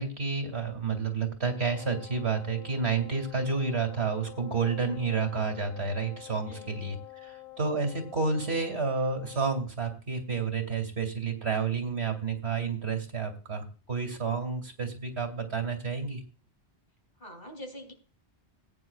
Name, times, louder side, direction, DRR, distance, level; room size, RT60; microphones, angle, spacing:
voice 1, 0.0-16.2, right 5 dB, 70° right, 5 dB, 2.9 m, -30 dB
Wind instrument woodwind instrument, 1.5-9.7, left 16 dB, 75° left, 3.6 m, -48 dB
voice 2, 6.5-6.8 17.2-17.9, equal, 45° left, 4 dB, 3.3 m, -44 dB
19.0 x 9.6 x 2.4 m, 0.38 s
omnidirectional pair, 1.1 m